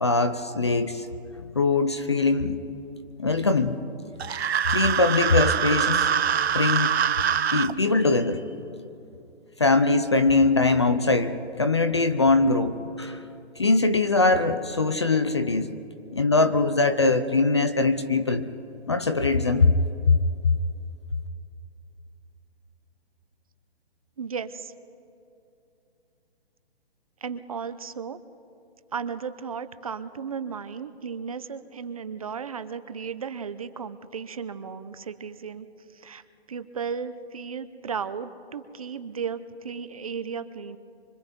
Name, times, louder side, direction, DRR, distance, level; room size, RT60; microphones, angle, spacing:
voice 1, 0.0-1.1 1.4-2.6 3.2-3.8 4.7-6.1 6.5-7.0 7.5-8.4 9.6-13.2 13.6-15.7 16.1-18.5 18.9-19.7 20.1-20.2 20.4-20.5, left 3 dB, 25° left, 10 dB, 0.5 m, -22 dB
sound 1, 4.2-7.7, right 8 dB, 75° right, 0.7 m, -24 dB
voice 2, 24.2-24.7 27.2-28.2 28.9-35.7 35.9-36.2 36.5-40.8, right 6 dB, 35° right, 12 dB, 0.7 m, -35 dB
25.0 x 23.0 x 5.3 m, 2.7 s
hypercardioid pair, 170°, 32 cm